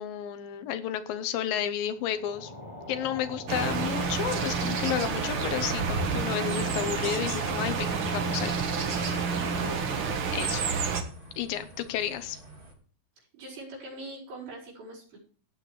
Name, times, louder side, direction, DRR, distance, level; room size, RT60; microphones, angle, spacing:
voice 1, 0.0-2.5 2.9-8.5 8.8-9.4 10.3-10.7 11.4-12.4, left 10 dB, 80° left, 11 dB, 2.6 m, -32 dB
sound 1, 1.9-10.6, left 1 dB, 10° left, 2.1 m, -49 dB
sound 2, 3.5-11.0, right 5 dB, 55° right, 1.6 m, -29 dB
sound 3, 5.1-12.7, right 2 dB, 20° right, 1.6 m, -46 dB
voice 2, 9.3-9.8 13.3-15.2, right 2 dB, 85° right, -5 dB, 6.6 m, -42 dB
17.0 x 8.6 x 3.3 m, 0.44 s
omnidirectional pair, 4.2 m